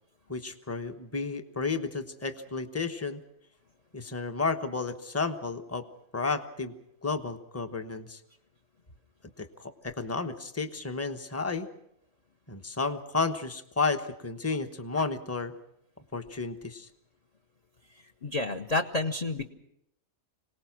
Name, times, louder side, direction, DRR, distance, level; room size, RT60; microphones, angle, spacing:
voice 1, 0.3-3.2 3.9-5.9 6.1-6.7 7.0-8.2 9.4-11.7 12.5-15.5 16.1-16.9, left 4 dB, 10° left, 7 dB, 1.0 m, -32 dB
voice 2, 18.0-19.5, left 2 dB, 35° left, 7 dB, 0.9 m, -30 dB
25.5 x 18.5 x 6.0 m, 0.77 s
omnidirectional pair, 1.5 m